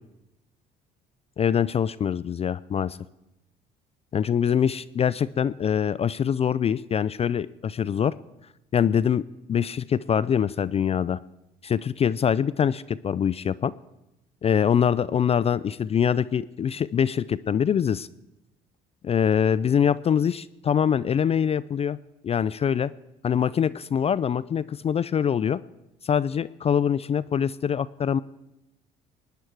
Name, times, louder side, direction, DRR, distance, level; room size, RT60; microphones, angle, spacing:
voice 1, 1.4-3.0 4.1-8.1 8.7-11.2 11.6-13.7 14.4-18.1 19.0-22.0 22.2-22.9 23.2-25.6 26.0-28.2, left 8 dB, 30° left, 18 dB, 0.4 m, -24 dB
18.5 x 10.0 x 4.7 m, 0.91 s
hypercardioid pair, 65°, 20 cm